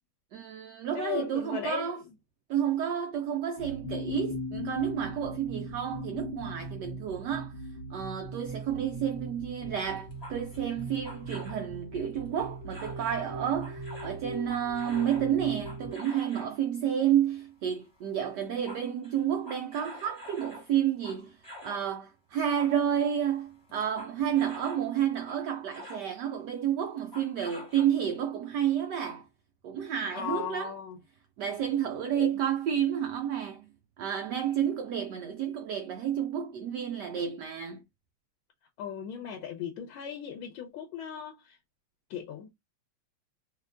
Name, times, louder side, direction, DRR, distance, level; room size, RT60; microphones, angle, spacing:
voice 1, 0.3-2.0 2.5-7.5 7.9-29.2 29.6-30.7 31.4-33.7 34.0-37.8, right 9 dB, 80° right, 0.9 m, -30 dB
voice 2, 0.9-2.0 30.1-31.0 32.1-32.3 38.8-41.6 42.1-42.5, left 8 dB, 80° left, 1.5 m, -37 dB
sound 1, 3.6-15.9, equal, 40° left, 1.0 m, -39 dB
sound 2, 10.0-11.6 12.3-13.3 13.6-16.6 17.7-18.0 18.2-21.9 22.3-24.9 25.3-26.1 27.0-28.2, left 1 dB, 15° left, 1.0 m, -47 dB
4.4 x 2.4 x 2.4 m
omnidirectional pair, 2.3 m